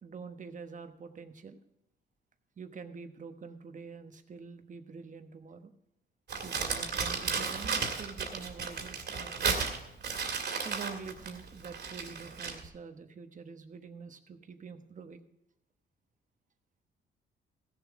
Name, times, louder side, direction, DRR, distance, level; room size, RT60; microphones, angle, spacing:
voice 1, 0.0-1.6 2.6-5.7 6.4-9.8 10.6-15.2, right 5 dB, 40° right, 8 dB, 1.2 m, -46 dB
Crumpling crinkling, 6.3-12.7, right 5 dB, 60° right, 2.3 m, -34 dB
15.5 x 7.3 x 4.8 m, 0.85 s
cardioid pair, 90°, 20 cm